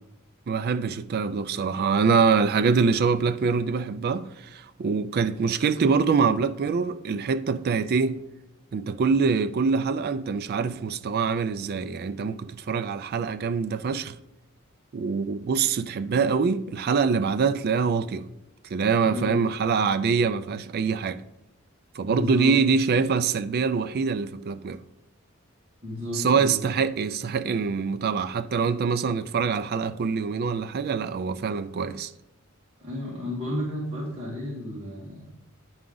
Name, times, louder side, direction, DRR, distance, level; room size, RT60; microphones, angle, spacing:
voice 1, 0.5-8.2 8.7-14.2 14.9-18.3 18.7-21.2 22.0-24.8 26.1-32.1, right 5 dB, 50° right, 0.3 m, -24 dB
voice 2, 19.0-19.4 22.1-22.6 25.8-26.6 32.8-35.2, left 1 dB, 30° right, 1.6 m, -32 dB
9.5 x 4.8 x 3.9 m
head